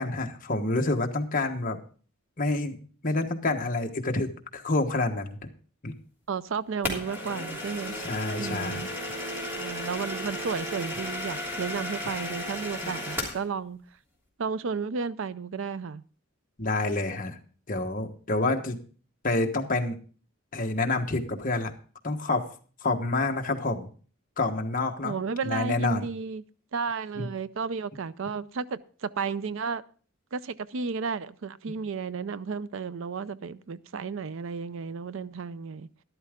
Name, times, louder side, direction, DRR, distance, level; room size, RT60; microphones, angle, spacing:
voice 1, 0.0-1.8 2.4-2.8 3.0-5.5 5.8-5.9 8.0-8.9 12.8-12.9 16.6-17.4 17.7-18.8 19.2-20.0 20.5-21.7 22.0-22.5 22.8-23.9 24.4-25.1 25.4-26.1 27.2-27.3, left 2 dB, 40° left, 1.2 m, -28 dB
voice 2, 6.3-8.0 8.4-9.0 9.6-13.8 14.4-16.0 25.0-26.4 26.7-29.8 30.3-35.9, right 5 dB, 60° right, 0.5 m, -33 dB
sound 1, 6.8-13.4, left 1 dB, 10° right, 3.2 m, -34 dB
12.5 x 11.5 x 3.6 m
head